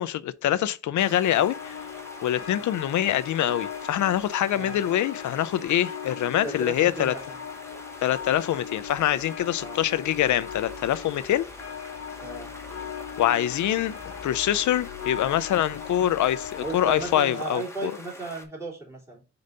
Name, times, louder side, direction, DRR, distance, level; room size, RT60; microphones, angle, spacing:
voice 1, 0.0-1.8 2.2-7.1 8.0-11.5 13.2-17.9, left 11 dB, 90° left, 0.4 m, -25 dB
sound 1, 1.0-18.5, left 1 dB, 10° left, 1.2 m, -45 dB
sound 2, 1.3-17.2, left 8 dB, 50° left, 0.9 m, -39 dB
voice 2, 4.5-4.8 6.4-7.4 9.6-9.8 12.2-12.5 16.6-19.2, right 2 dB, 10° right, 2.9 m, -35 dB
5.2 x 3.9 x 5.4 m
wide cardioid pair, 140°, 29 cm